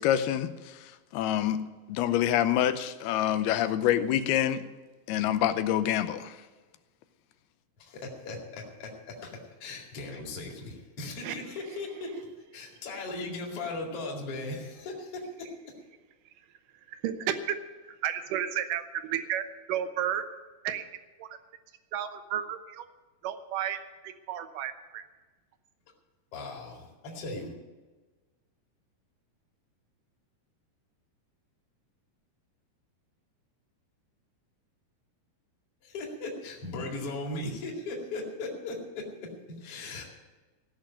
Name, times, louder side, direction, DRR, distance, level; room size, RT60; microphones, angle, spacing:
voice 1, 0.0-4.6 5.1-6.4, left 11 dB, 85° left, 11 dB, 2.7 m, -27 dB
voice 2, 7.8-12.3 12.5-15.7 26.3-26.6 27.2-27.5 35.8-40.0, left 2 dB, 40° left, -1 dB, 2.8 m, -38 dB
voice 3, 16.9-17.6 17.9-20.2 20.6-20.8 21.2-21.3 21.9-22.9 23.2-25.0, right 10 dB, 70° right, 9 dB, 2.3 m, -32 dB
16.0 x 6.4 x 9.7 m, 1.3 s
omnidirectional pair, 4.5 m